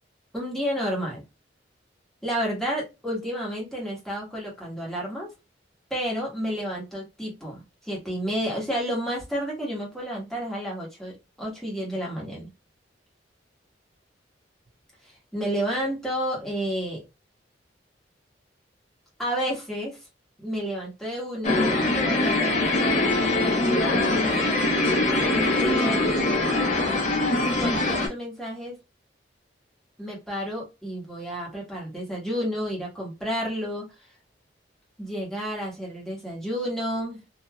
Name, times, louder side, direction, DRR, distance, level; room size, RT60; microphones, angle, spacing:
voice 1, 0.3-1.2 2.2-5.3 5.9-12.5 15.3-17.0 19.2-20.0 20.4-24.6 25.2-26.3 27.3-28.8 30.0-33.9 35.0-37.2, equal, ahead, -4 dB, 1.3 m, -31 dB
sound 1, 21.4-28.1, left 2 dB, 40° left, 0.9 m, -23 dB
3.2 x 2.6 x 2.2 m, 0.25 s
head